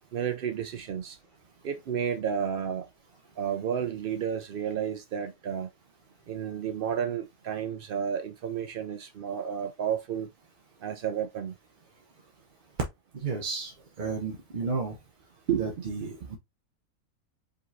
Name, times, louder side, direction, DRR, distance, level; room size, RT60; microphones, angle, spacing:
voice 1, 0.1-1.2 1.6-2.9 3.4-5.7 6.3-10.3 10.8-11.5 15.5-15.7 16.0-16.1, right 8 dB, 90° right, 0.4 m, -31 dB
voice 2, 13.1-15.0 15.6-16.4, right 4 dB, 40° right, 0.8 m, -33 dB
5.1 x 3.8 x 2.6 m
omnidirectional pair, 1.6 m